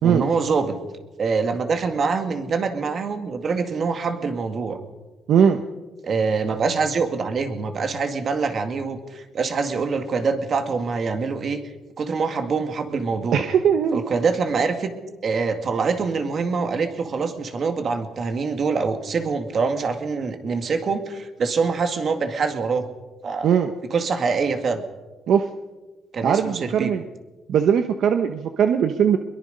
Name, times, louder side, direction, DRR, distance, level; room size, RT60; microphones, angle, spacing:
voice 1, 0.0-0.8 1.2-4.8 6.0-11.6 12.0-13.4 13.9-14.9 15.2-22.9 23.2-23.5 23.9-24.8 26.1-26.9, right 4 dB, 45° right, 6 dB, 2.2 m, -24 dB
voice 2, 5.3-5.6 13.3-14.1 23.4-23.7 25.3-25.5 26.2-27.0 27.5-29.2, right 8 dB, 65° right, 7 dB, 1.0 m, -19 dB
22.5 x 22.0 x 5.4 m, 1.2 s
cardioid pair, 125°, 0 cm